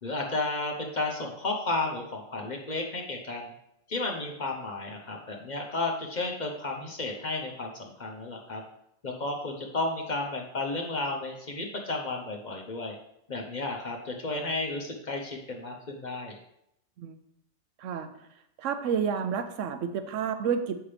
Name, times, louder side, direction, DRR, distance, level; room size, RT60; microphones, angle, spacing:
voice 1, 0.0-3.5 3.9-8.6 9.0-12.9 13.3-16.4, left 2 dB, 40° left, 1 dB, 0.8 m, -33 dB
voice 2, 17.8-18.1 18.6-20.8, right 7 dB, 75° right, 9 dB, 0.9 m, -30 dB
7.2 x 5.6 x 3.3 m, 0.78 s
omnidirectional pair, 1.3 m